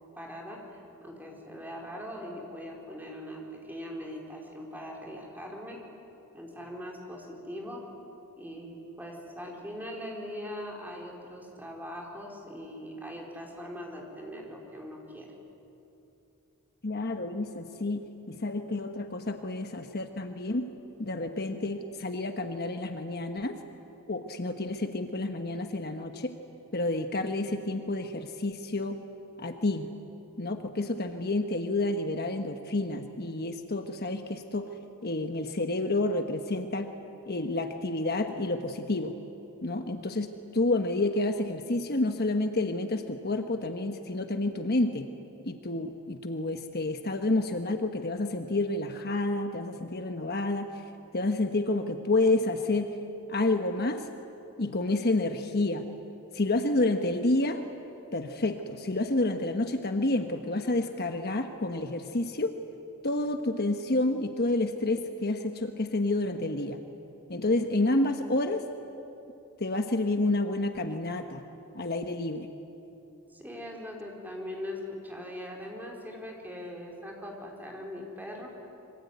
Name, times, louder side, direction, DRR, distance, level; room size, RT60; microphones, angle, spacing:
voice 1, 0.1-0.6 1.0-5.8 6.3-7.8 8.4-15.3 73.3-78.5, equal, 10° right, -1 dB, 4.4 m, -41 dB
voice 2, 16.8-20.7 21.0-23.6 24.1-26.4 26.7-29.0 29.4-29.9 30.4-34.7 35.0-36.9 37.3-39.1 39.6-45.1 45.4-50.7 51.1-53.0 53.3-54.1 54.6-55.9 56.3-57.6 58.1-62.5 63.0-66.8 67.3-68.6 69.6-71.4 71.7-72.5, left 2 dB, 45° left, 6 dB, 1.2 m, -29 dB
26.0 x 24.5 x 9.5 m, 2.9 s
head